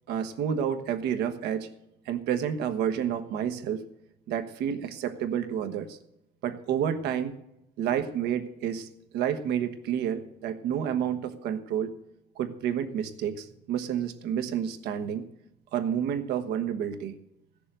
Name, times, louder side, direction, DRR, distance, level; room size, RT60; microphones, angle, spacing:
voice 1, 0.1-1.7 2.0-3.8 4.3-6.0 6.4-7.4 7.8-8.9 9.1-11.9 12.4-15.3 15.7-17.2, right 9 dB, 85° right, 7 dB, 1.3 m, -29 dB
16.0 x 6.8 x 8.1 m, 0.84 s
cardioid pair, 110°, 17 cm